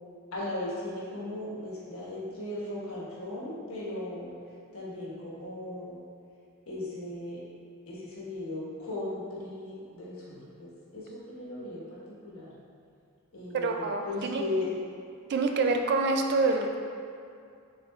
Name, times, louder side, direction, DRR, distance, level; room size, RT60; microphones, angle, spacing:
voice 1, 0.3-4.3 4.7-6.0 6.7-7.4 7.9-12.5 13.3-14.7, left 2 dB, 70° left, -7 dB, 1.3 m, -37 dB
voice 2, 13.5-14.4 15.3-16.8, right 3 dB, 50° right, 4 dB, 0.4 m, -26 dB
6.1 x 3.6 x 2.4 m, 2.4 s
head